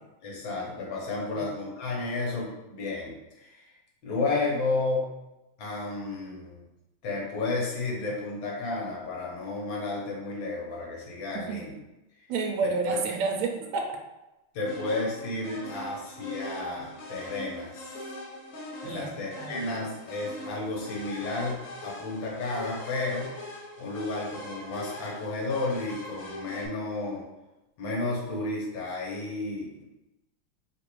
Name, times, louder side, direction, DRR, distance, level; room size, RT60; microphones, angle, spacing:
voice 1, 0.2-3.6 4.0-5.1 5.6-6.6 7.0-11.7 12.9-13.0 14.5-17.9 18.8-23.3 23.8-27.2 27.8-29.8, left 3 dB, 70° left, -4 dB, 1.8 m, -32 dB
voice 2, 12.3-14.0 18.8-19.6, right 4 dB, 80° right, 3 dB, 1.4 m, -30 dB
sound 1, 14.7-26.7, left 1 dB, 55° left, 1.0 m, -41 dB
3.7 x 2.5 x 4.6 m, 0.97 s
omnidirectional pair, 2.2 m